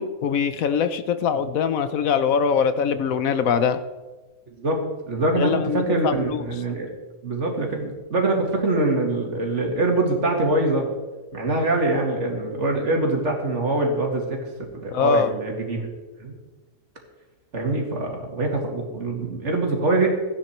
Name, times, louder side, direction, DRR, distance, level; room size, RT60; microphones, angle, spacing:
voice 1, 0.0-3.8 5.4-6.5 14.9-15.3, left 6 dB, 70° left, 11 dB, 1.1 m, -22 dB
voice 2, 5.1-6.9 7.2-10.9 11.3-14.4 14.8-15.9 16.2-16.3 17.5-20.2, right 2 dB, 50° right, 1 dB, 2.4 m, -24 dB
15.0 x 10.0 x 4.4 m, 1.2 s
omnidirectional pair, 1.5 m